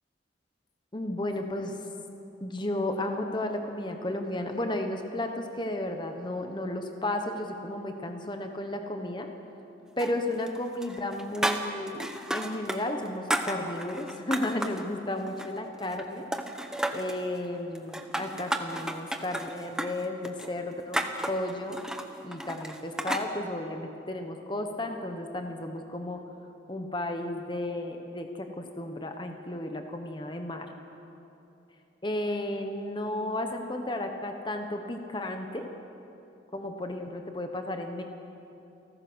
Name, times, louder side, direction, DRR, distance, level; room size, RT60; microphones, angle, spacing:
voice 1, 0.9-1.7 2.4-9.3 10.0-16.3 16.9-21.0 21.3-21.8 22.2-26.2 26.7-30.7 32.0-35.7 36.5-38.0, left 1 dB, 25° left, 5 dB, 1.2 m, -33 dB
sound 1, 10.0-10.6 10.8-12.8 13.1-14.8 15.3-16.1 16.3-17.2 17.8-23.3, right 1 dB, 5° right, 0.8 m, -33 dB
29.0 x 14.5 x 6.3 m, 2.9 s
head